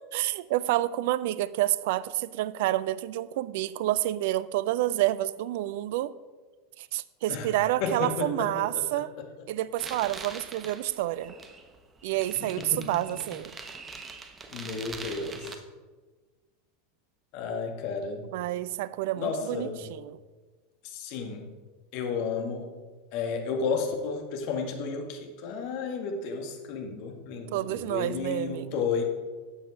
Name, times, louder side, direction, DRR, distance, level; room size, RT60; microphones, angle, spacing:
voice 1, 0.1-6.1 6.8-9.1 9.5-11.3 12.0-13.6 18.3-20.2 27.5-28.7, right 15 dB, 60° right, 17 dB, 0.4 m, -29 dB
voice 2, 7.3-8.5 8.7-9.0 12.4-12.8 14.5-15.6 17.3-18.2 19.1-19.8 20.8-21.4 21.9-22.7 23.1-29.0, left 5 dB, 55° left, 3 dB, 1.8 m, -32 dB
sound 1, 9.8-15.6, right 4 dB, 25° right, 1.2 m, -43 dB
13.0 x 8.9 x 3.8 m, 1.4 s
figure-of-eight pair, 85°, 0 cm